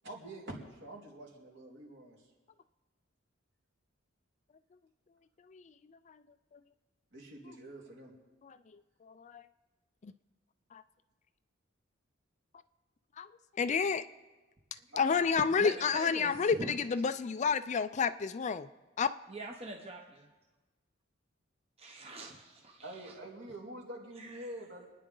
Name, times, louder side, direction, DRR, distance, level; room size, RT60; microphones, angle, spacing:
voice 1, 0.0-2.2 7.1-8.1 14.9-15.0 22.8-24.9, right 1 dB, 60° right, -2 dB, 3.3 m, -46 dB
voice 2, 9.0-9.4 10.0-10.1 10.7-10.8 13.2-13.3 13.6-14.0 15.0-18.7 19.0-19.1, left 5 dB, 35° left, 13 dB, 0.4 m, -30 dB
voice 3, 15.6-16.7 19.3-20.3 21.8-23.2 24.2-24.5, right 2 dB, 30° right, 1 dB, 1.0 m, -44 dB
26.5 x 9.9 x 3.9 m, 1.2 s
head